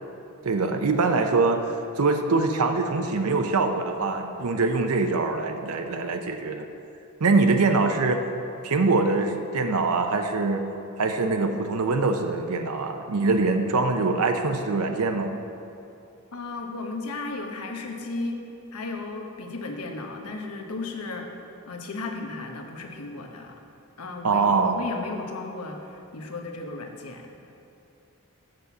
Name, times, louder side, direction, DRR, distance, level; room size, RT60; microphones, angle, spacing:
voice 1, 0.4-6.7 7.2-8.2 8.6-10.7 11.0-15.4 24.2-24.8, right 3 dB, 75° right, 5 dB, 0.6 m, -23 dB
voice 2, 16.3-18.4 18.7-21.4 21.7-23.6 24.0-27.3, left 3 dB, 85° left, 3 dB, 1.0 m, -35 dB
7.7 x 6.3 x 6.9 m, 2.7 s
head